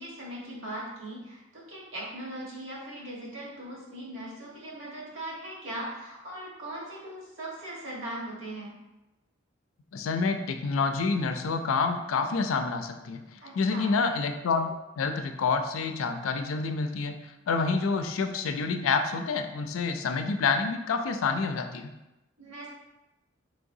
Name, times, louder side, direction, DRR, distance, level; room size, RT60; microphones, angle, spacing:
voice 1, 0.0-8.7 13.4-13.9 22.4-22.7, right 1 dB, 75° right, -5 dB, 1.4 m, -39 dB
voice 2, 9.9-13.2 13.5-21.9, left 4 dB, 85° left, 7 dB, 0.4 m, -28 dB
4.8 x 3.2 x 2.6 m, 0.96 s
head